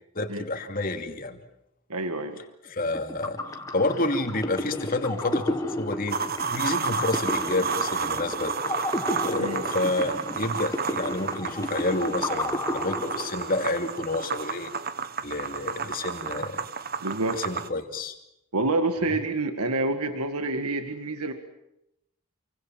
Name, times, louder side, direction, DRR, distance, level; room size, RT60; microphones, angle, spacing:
voice 1, 0.1-1.4 2.7-3.4 3.7-6.2 6.5-8.5 9.2-14.7 15.2-16.6 17.3-18.2 19.1-19.2, left 2 dB, 40° left, 6 dB, 2.7 m, -29 dB
voice 2, 1.9-2.4 9.4-9.6 17.0-17.4 18.5-21.3, right 2 dB, 90° right, 7 dB, 2.1 m, -27 dB
sound 1, 2.9-13.8, left 1 dB, 15° left, 1.8 m, -33 dB
sound 2, 6.1-17.7, right 5 dB, 40° right, 1.3 m, -31 dB
28.5 x 24.5 x 7.6 m, 0.83 s
head